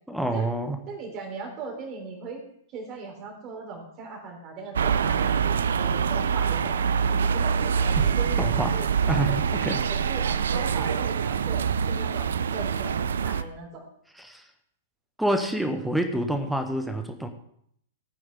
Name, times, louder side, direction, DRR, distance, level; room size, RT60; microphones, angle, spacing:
voice 1, 0.1-0.8 8.0-8.1 8.4-8.8 9.0-9.8 14.2-14.4 15.2-17.3, right 1 dB, ahead, 6 dB, 1.2 m, -27 dB
voice 2, 0.9-2.4 2.7-9.4 9.9-13.9, right 4 dB, 30° right, 2 dB, 3.4 m, -38 dB
sound 1, 4.7-13.4, right 7 dB, 60° right, 0.5 m, -25 dB
16.0 x 9.2 x 3.5 m, 0.69 s
figure-of-eight pair, 105°, 0 cm